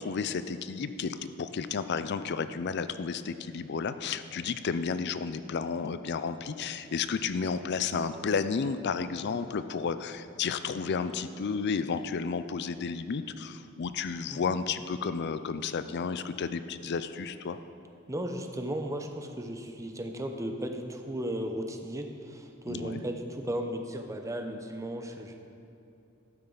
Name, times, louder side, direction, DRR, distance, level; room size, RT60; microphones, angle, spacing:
voice 1, 0.0-17.6 22.7-23.0, left 5 dB, 55° left, 12 dB, 0.4 m, -32 dB
voice 2, 18.1-25.4, right 1 dB, 15° right, 5 dB, 0.7 m, -35 dB
12.5 x 9.0 x 3.9 m, 2.7 s
head